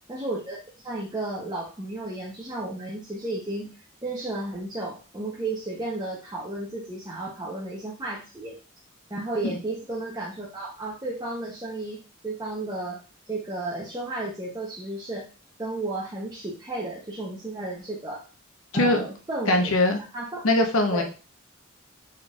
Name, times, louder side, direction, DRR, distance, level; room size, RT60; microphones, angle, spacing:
voice 1, 0.1-0.6 0.8-3.7 4.0-8.6 9.1-12.0 12.2-13.0 13.3-15.3 15.6-18.2 18.7-19.7 20.1-20.4 20.9-21.0, right 2 dB, 20° right, -5 dB, 0.7 m, -33 dB
voice 2, 18.7-19.0 19.5-20.0 20.4-21.0, left 1 dB, 85° left, 4 dB, 0.8 m, -21 dB
4.3 x 3.8 x 2.4 m, 0.34 s
head